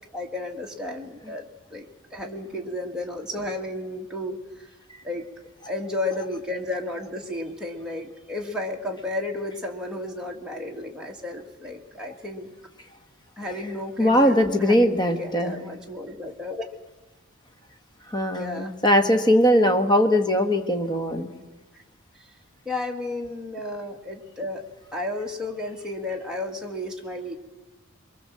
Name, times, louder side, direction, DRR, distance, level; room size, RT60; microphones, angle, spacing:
voice 1, 0.1-1.4 1.7-4.7 5.0-5.3 5.7-12.5 13.4-16.7 18.4-18.7 22.1-22.4 22.7-24.6 24.9-27.4, left 2 dB, 5° right, -1 dB, 2.2 m, -33 dB
voice 2, 14.0-15.6 18.1-21.3, equal, 20° left, 5 dB, 1.5 m, -20 dB
24.0 x 22.5 x 7.7 m, 1.2 s
head